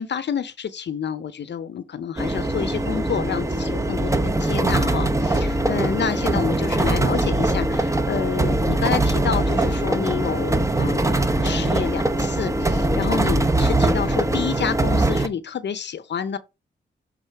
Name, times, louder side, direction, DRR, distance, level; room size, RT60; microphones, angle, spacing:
voice 1, 0.0-16.4, left 7 dB, 65° left, 0.7 m, -29 dB
sound 1, 2.2-15.3, right 2 dB, 15° right, 0.9 m, -22 dB
7.4 x 3.7 x 4.5 m
cardioid pair, 65°, 19 cm